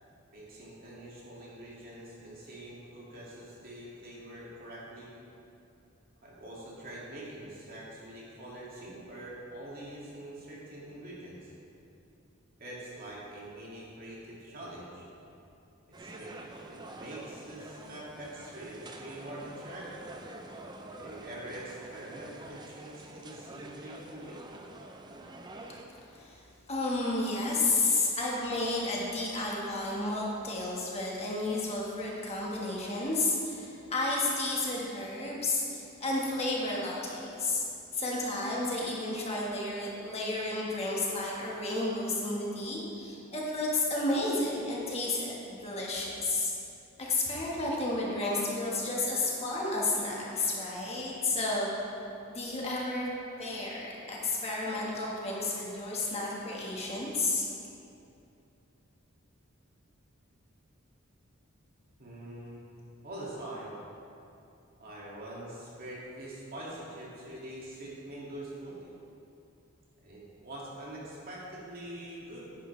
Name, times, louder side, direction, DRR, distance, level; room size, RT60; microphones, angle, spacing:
voice 1, 0.3-5.1 6.2-11.5 12.6-15.1 16.0-16.4 16.7-20.1 20.9-24.4 62.0-62.6 63.0-63.8 64.8-68.9 70.0-72.4, right 1 dB, 45° right, -6 dB, 2.3 m, -44 dB
sound 1, 15.9-25.8, right 2 dB, 20° right, 0.6 m, -47 dB
voice 2, 26.1-26.4 26.7-37.6 37.9-46.5 47.0-51.7 52.3-53.1 53.4-57.5, left 2 dB, 30° left, -4 dB, 1.6 m, -31 dB
10.5 x 10.0 x 3.3 m, 2.7 s
head